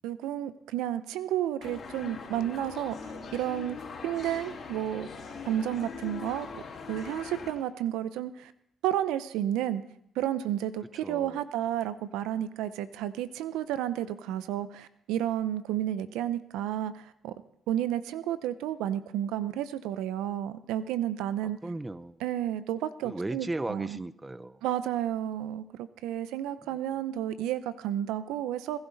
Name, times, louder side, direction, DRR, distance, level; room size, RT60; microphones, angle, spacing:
voice 1, 0.0-3.8 4.0-5.1 5.4-8.5 8.8-9.8 10.2-17.3 17.7-21.6 22.2-24.0 24.6-28.8, right 11 dB, 85° right, 14 dB, 0.5 m, -31 dB
sound 1, 1.6-7.5, left 5 dB, 55° left, 3.1 m, -41 dB
voice 2, 11.0-11.4 21.4-22.2 23.0-24.6 26.7-26.8, right 2 dB, 20° right, 17 dB, 0.6 m, -36 dB
20.0 x 11.0 x 4.0 m, 0.73 s
supercardioid pair, 60°, 0 cm